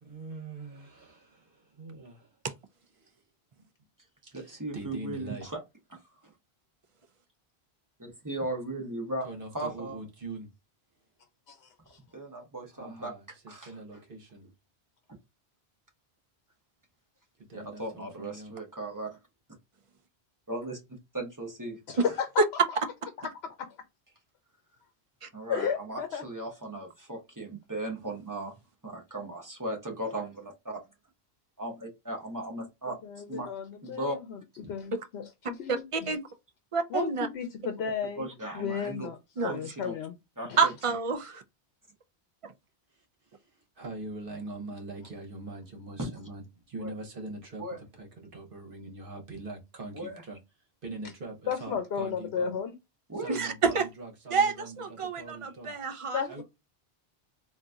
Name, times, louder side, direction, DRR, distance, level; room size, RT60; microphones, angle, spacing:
voice 1, 0.0-2.4 3.0-3.2 3.5-3.7 4.2-5.5 9.2-10.5 12.7-14.5 17.4-18.6 42.9-50.4 50.8-52.5 53.2-55.7 56.3-56.4, right 2 dB, 60° right, 1.2 m, -43 dB
voice 2, 4.3-5.6 5.9-6.3 8.0-9.3 9.5-10.0 12.1-13.1 13.5-14.0 17.5-19.2 20.5-20.8 21.1-22.1 25.3-28.5 28.8-30.8 31.6-32.9 33.3-33.5 33.8-34.2 34.6-34.7 38.2-39.1 39.5-40.0 40.4-40.7 46.0-46.1 46.8-46.9 47.6-47.8 49.9-50.2 53.1-53.4, right 1 dB, 20° right, 1.0 m, -37 dB
voice 3, 21.9-22.3 23.2-23.3 25.5-26.2 33.0-34.4 34.7-36.1 36.9-38.3 38.5-39.2 39.4-40.1 40.5-40.6 51.5-52.7 56.1-56.4, left 7 dB, 85° left, 0.9 m, -33 dB
voice 4, 35.7-36.2 36.7-37.3 39.4-39.5 40.6-41.4 42.4-42.5 53.3-53.9 54.3-56.2, right 5 dB, 40° right, 0.5 m, -28 dB
3.9 x 2.6 x 2.3 m
omnidirectional pair, 1.1 m